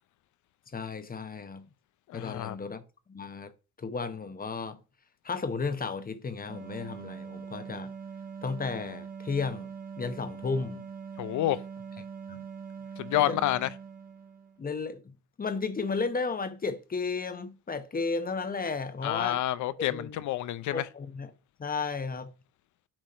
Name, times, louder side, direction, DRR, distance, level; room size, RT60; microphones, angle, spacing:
voice 1, 0.7-1.6 2.1-2.8 3.1-3.5 3.8-4.8 5.2-7.9 8.4-9.7 10.0-10.8 12.3-12.4 13.1-13.4 14.6-19.4 19.9-20.2 20.7-21.3 21.6-22.3, left 4 dB, 30° left, 0.9 m, -33 dB
voice 2, 2.1-2.6 11.2-11.6 13.0-13.7 19.0-20.9, left 13 dB, 75° left, 0.6 m, -29 dB
sound 1, 6.5-14.6, right 6 dB, 30° right, 1.3 m, -42 dB
8.8 x 3.0 x 5.5 m
cardioid pair, 90°, 30 cm